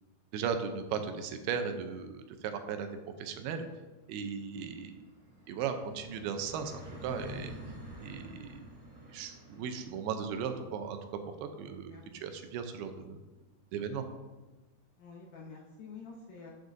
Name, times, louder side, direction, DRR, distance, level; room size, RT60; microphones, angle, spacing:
voice 1, 0.3-2.9 3.2-3.7 4.1-5.0 5.5-6.7 7.0-7.5 8.0-8.6 9.1-11.0 11.4-11.9 12.2-13.2 13.7-14.1, right 6 dB, 85° right, 7 dB, 2.6 m, -36 dB
sound 1, 2.4-13.6, equal, 10° right, 1.9 m, -51 dB
voice 2, 4.5-4.9 11.8-12.0 15.0-16.5, left 4 dB, 75° left, -1 dB, 1.9 m, -49 dB
12.0 x 6.5 x 2.6 m, 1.2 s
omnidirectional pair, 4.5 m